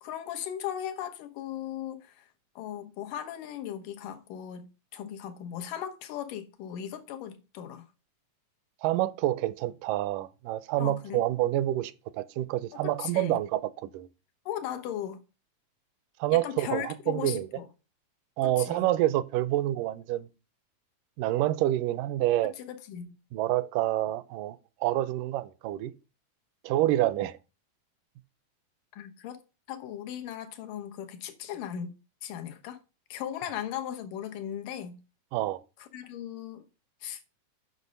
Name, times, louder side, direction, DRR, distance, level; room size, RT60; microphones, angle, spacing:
voice 1, 0.0-2.3 2.6-7.9 10.8-11.2 12.7-13.4 14.5-15.2 16.3-17.7 18.4-18.9 22.4-23.2 28.9-29.4 29.7-32.0 32.2-32.8 33.1-35.0 35.8-36.6 37.0-37.2, left 10 dB, 85° left, 2.7 m, -37 dB
voice 2, 8.8-14.1 16.2-17.5 18.4-20.3 21.2-22.5 23.3-25.9 26.6-27.4 35.3-35.6, right 14 dB, 85° right, 2.2 m, -28 dB
8.2 x 6.3 x 5.2 m
omnidirectional pair, 3.7 m